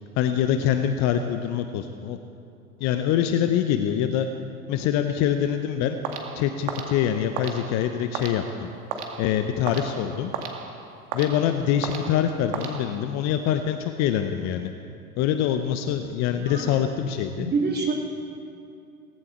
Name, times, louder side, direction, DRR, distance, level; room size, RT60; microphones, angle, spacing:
voice 1, 0.2-2.2 2.8-4.3 4.7-6.0 6.3-8.7 9.0-10.3 11.1-14.7 15.2-17.5, left 9 dB, 40° left, 8 dB, 0.9 m, -24 dB
sound 1, 6.0-13.3, right 5 dB, 50° right, 2.2 m, -36 dB
voice 2, 16.3-16.8 17.3-17.9, right 4 dB, 20° right, -1 dB, 3.3 m, -27 dB
18.5 x 15.5 x 4.5 m, 2.5 s
figure-of-eight pair, 95°, 44 cm